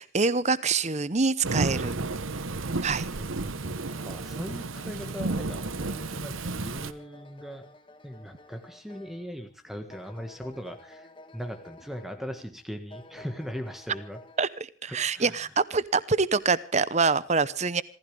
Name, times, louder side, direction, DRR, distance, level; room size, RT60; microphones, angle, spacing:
voice 1, 0.0-2.0 2.8-3.1 14.4-14.5 14.8-17.8, right 4 dB, 35° right, 18 dB, 0.8 m, -25 dB
Thunderstorm / Rain, 1.4-6.9, right 3 dB, 90° right, 1.1 m, -32 dB
voice 2, 2.9-3.8 4.0-7.7 8.0-11.1 11.3-14.2 14.9-15.4, equal, ahead, 7 dB, 1.6 m, -39 dB
sound 1, 3.7-9.5 9.9-12.6 12.9-14.5, left 1 dB, 25° left, 1.6 m, -52 dB
26.5 x 15.5 x 3.4 m, 0.35 s
head